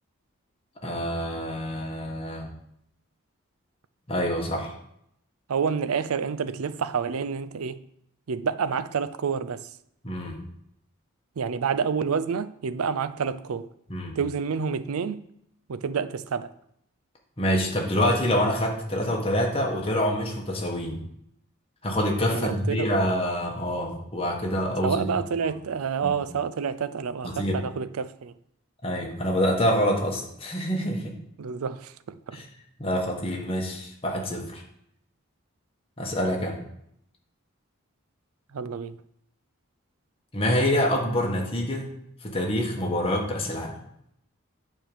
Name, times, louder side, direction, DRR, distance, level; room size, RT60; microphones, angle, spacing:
voice 1, 0.8-2.5 4.1-4.7 10.0-10.4 13.9-14.2 17.4-21.0 21.8-25.1 26.0-26.2 27.2-27.6 28.8-31.1 32.3-32.4 32.8-34.6 36.0-36.6 40.3-41.9 42.2-43.7, equal, 25° left, 1.4 m, -26 dB
voice 2, 5.5-7.8 8.3-9.7 11.4-13.7 14.2-15.2 15.7-16.5 22.3-23.0 24.8-28.3 31.4-32.4 38.5-39.0, right 6 dB, 85° right, 0.5 m, -28 dB
8.7 x 3.7 x 7.0 m
head